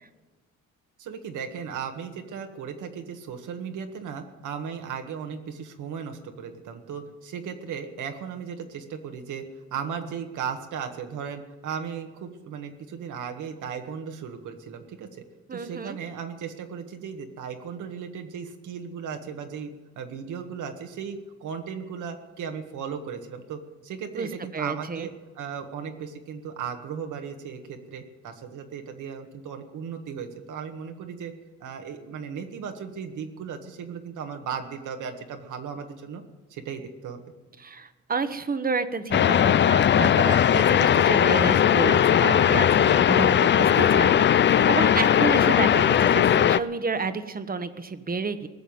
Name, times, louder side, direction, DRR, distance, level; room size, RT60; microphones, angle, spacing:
voice 1, 1.0-9.4 9.7-15.1 15.5-31.3 31.6-36.2 36.5-37.2, right 7 dB, 80° right, 5 dB, 1.8 m, -36 dB
voice 2, 15.5-16.0 24.2-24.3 24.5-25.1 37.6-48.5, right 4 dB, 30° right, 11 dB, 1.1 m, -30 dB
sound 1, 39.1-46.6, left 9 dB, 40° left, 0.4 m, -19 dB
19.0 x 7.0 x 9.4 m, 1.3 s
cardioid pair, 90°, 30 cm